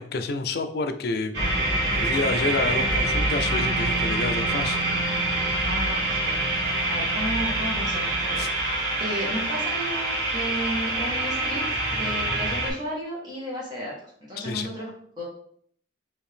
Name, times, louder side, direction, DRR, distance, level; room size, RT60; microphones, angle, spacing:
voice 1, 0.0-1.3 1.9-4.8 8.4-8.5 14.4-14.7, left 3 dB, 55° left, 7 dB, 0.4 m, -29 dB
sound 1, 1.3-12.7, right 2 dB, 65° right, 1.6 m, -25 dB
voice 2, 5.6-13.9 14.3-14.9 15.2-15.3, equal, 25° right, -4 dB, 1.0 m, -33 dB
4.6 x 2.7 x 3.3 m, 0.62 s
head